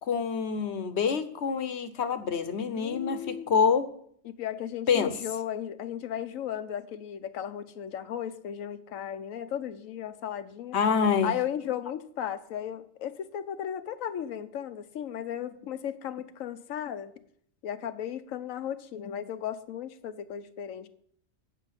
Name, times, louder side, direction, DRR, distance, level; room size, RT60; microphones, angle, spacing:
voice 1, 0.0-3.9 4.9-5.2 10.7-11.3, left 6 dB, 60° left, 11 dB, 1.1 m, -26 dB
voice 2, 2.7-3.5 4.2-10.8 11.2-17.1 17.6-20.9, left 10 dB, 90° left, 12 dB, 1.1 m, -35 dB
8.3 x 8.2 x 5.8 m, 0.64 s
omnidirectional pair, 1.4 m